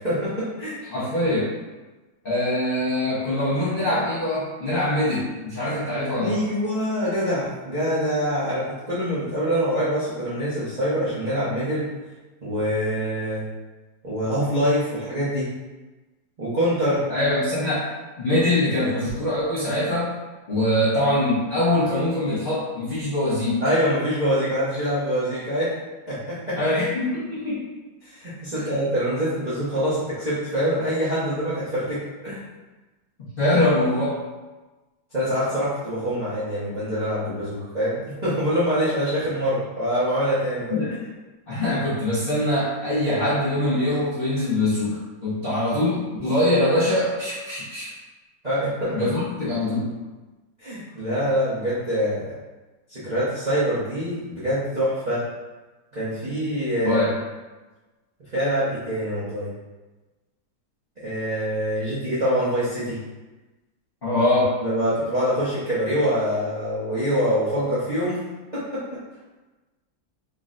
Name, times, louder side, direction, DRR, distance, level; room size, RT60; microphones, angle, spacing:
voice 1, 0.0-0.8 6.2-11.9 12.4-13.4 14.0-15.5 16.4-17.0 23.6-25.7 26.1-26.6 28.0-32.0 32.2-32.4 35.1-40.8 48.4-49.0 50.6-52.3 52.9-55.2 55.9-57.0 58.3-59.5 61.0-63.0 64.6-68.2 68.5-69.0, equal, 85° right, -12 dB, 0.3 m, -25 dB
voice 2, 0.9-1.5 2.2-6.4 17.1-17.8 18.2-20.1 20.5-23.6 26.6-27.7 28.5-28.7 33.4-34.2 40.7-40.9 41.5-47.9 48.9-49.9 56.8-57.1 64.0-64.6, left 1 dB, 75° left, -10 dB, 0.5 m, -23 dB
3.8 x 2.1 x 3.7 m, 1.2 s
omnidirectional pair, 2.3 m